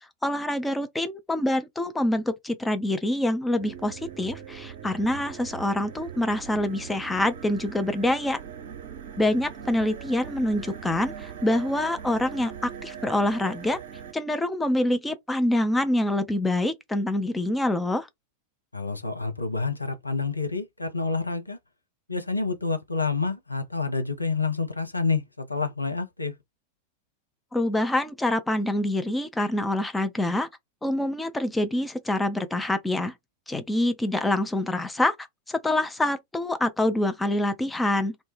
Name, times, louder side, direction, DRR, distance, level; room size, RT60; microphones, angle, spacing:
voice 1, 0.2-8.4 9.2-13.8 14.1-18.1 27.5-30.5 30.8-33.1 33.5-35.2 35.5-38.2, left 1 dB, 10° left, 0.4 m, -26 dB
sound 1, 3.6-14.1, right 8 dB, 55° right, 0.6 m, -40 dB
voice 2, 18.7-21.6 22.1-26.3, left 4 dB, 85° left, 0.5 m, -28 dB
2.0 x 2.0 x 3.1 m
figure-of-eight pair, 90°, 0 cm